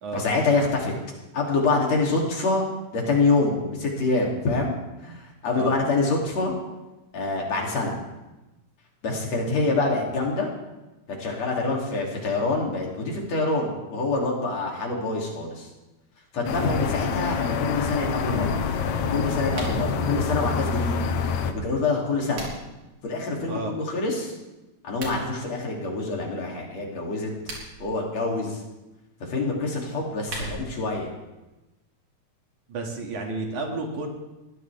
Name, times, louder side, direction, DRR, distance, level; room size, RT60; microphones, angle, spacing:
voice 1, 0.1-0.9 1.3-2.6 2.9-4.7 5.0-6.6 7.1-8.0 9.0-10.5 11.2-15.7 16.3-18.5 19.1-21.1 21.5-22.5 23.0-24.3 24.8-27.3 27.8-28.6 29.2-31.1, left 3 dB, 60° left, -2 dB, 4.2 m, -26 dB
sound 1, 16.4-21.5, left 5 dB, 80° left, 2.4 m, -26 dB
sound 2, 19.5-19.8 21.9-22.8 24.8-25.2 27.2-27.9 29.9-30.9, right 2 dB, 65° right, 4.8 m, -38 dB
voice 2, 32.7-34.1, right 3 dB, 90° right, 0 dB, 3.8 m, -31 dB
21.0 x 15.5 x 3.6 m, 1.0 s
omnidirectional pair, 3.3 m